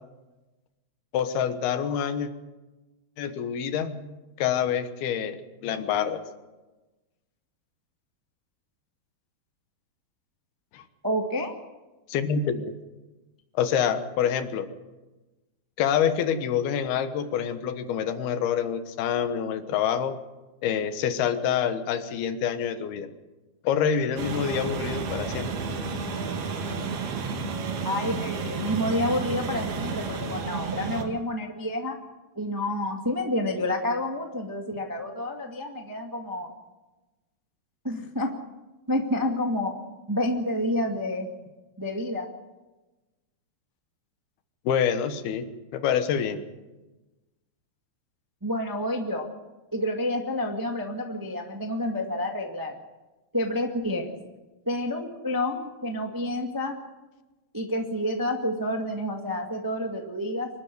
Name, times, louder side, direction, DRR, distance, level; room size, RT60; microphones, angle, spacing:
voice 1, 1.1-2.3 3.2-4.1 4.4-6.2 10.7-10.8 12.1-12.7 13.5-14.7 15.8-20.2 20.6-23.1 23.6-25.5 44.7-45.4 45.7-46.4, left 8 dB, 90° left, 10 dB, 3.3 m, -26 dB
voice 2, 11.0-11.5 27.8-32.0 32.3-36.5 37.8-38.3 38.9-39.7 40.1-41.3 41.8-42.3 48.4-49.3 49.7-52.7 53.3-54.1 54.6-56.8 57.5-60.5, left 1 dB, 15° right, 2 dB, 0.8 m, -29 dB
sound 1, 24.2-31.1, right 4 dB, 85° right, 3.9 m, -31 dB
25.0 x 12.5 x 9.5 m, 1.1 s
omnidirectional pair, 4.3 m